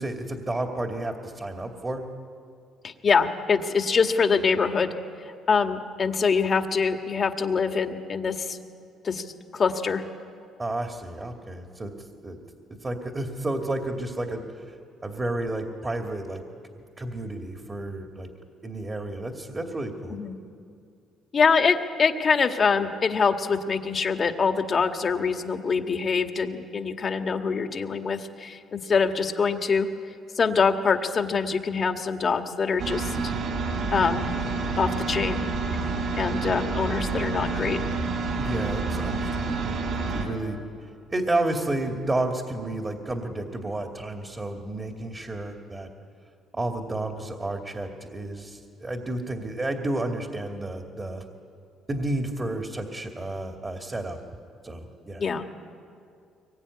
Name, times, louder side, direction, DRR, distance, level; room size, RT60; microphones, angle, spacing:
voice 1, 0.0-2.0 10.6-11.9 12.2-12.4 12.8-14.8 15.0-16.4 17.0-18.3 18.6-20.2 38.4-40.6 41.1-45.9 46.5-51.2 51.9-54.2 54.6-55.2, right 2 dB, 25° right, 3 dB, 2.5 m, -31 dB
voice 2, 2.8-4.9 5.5-8.6 9.0-9.3 9.5-10.0 20.1-20.4 21.3-29.9 30.4-33.3 33.9-34.3 34.8-35.4 36.2-37.8 55.2-55.5, left 5 dB, 45° left, 6 dB, 1.9 m, -24 dB
sound 1, 32.8-40.3, right 3 dB, 65° right, 5.0 m, -28 dB
23.5 x 21.0 x 9.8 m, 2.4 s
supercardioid pair, 80°, 0 cm